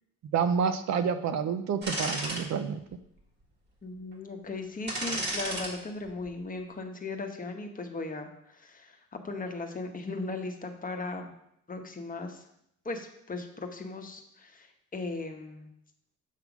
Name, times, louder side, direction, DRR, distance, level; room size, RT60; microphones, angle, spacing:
voice 1, 0.3-2.8, right 6 dB, 65° right, 10 dB, 0.6 m, -28 dB
sound 1, 1.8-2.4 2.9-3.0 4.9-5.7 6.1-6.3, right 1 dB, 35° right, 1.8 m, -32 dB
voice 2, 3.8-11.3 11.7-12.4 12.8-15.7, left 3 dB, 30° left, 4 dB, 1.1 m, -37 dB
7.4 x 3.6 x 6.0 m, 0.74 s
cardioid pair, 90°, 30 cm